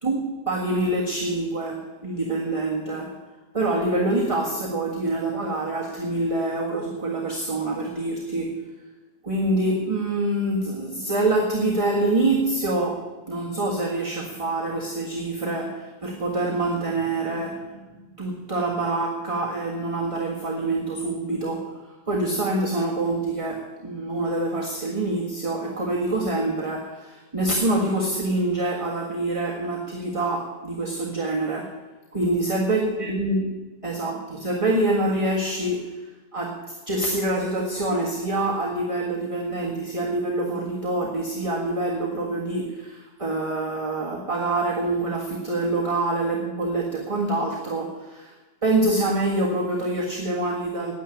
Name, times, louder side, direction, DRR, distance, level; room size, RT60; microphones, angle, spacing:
voice 1, 0.0-3.1 3.5-8.7 9.2-31.8 32.1-36.0 36.3-48.3 48.6-50.9, right 2 dB, 20° right, -2 dB, 1.6 m, -26 dB
10.0 x 9.1 x 10.0 m, 1.2 s
omnidirectional pair, 1.9 m